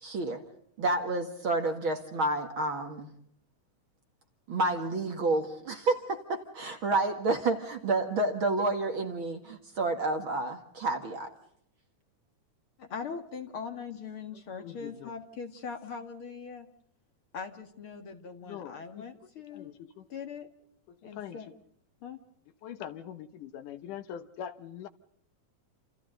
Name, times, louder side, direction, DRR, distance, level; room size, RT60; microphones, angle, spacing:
voice 1, 0.0-0.4 0.8-3.1 4.5-11.3, right 2 dB, 45° right, 5 dB, 2.0 m, -29 dB
voice 2, 12.8-16.7 17.3-19.7 20.1-20.5 21.0-21.5 22.0-22.2, left 6 dB, 45° left, 5 dB, 2.4 m, -41 dB
voice 3, 14.6-15.2 18.4-19.1 19.5-20.1 20.9-21.5 22.6-24.9, left 9 dB, 75° left, 11 dB, 2.6 m, -43 dB
28.5 x 28.0 x 3.9 m, 0.69 s
omnidirectional pair, 3.7 m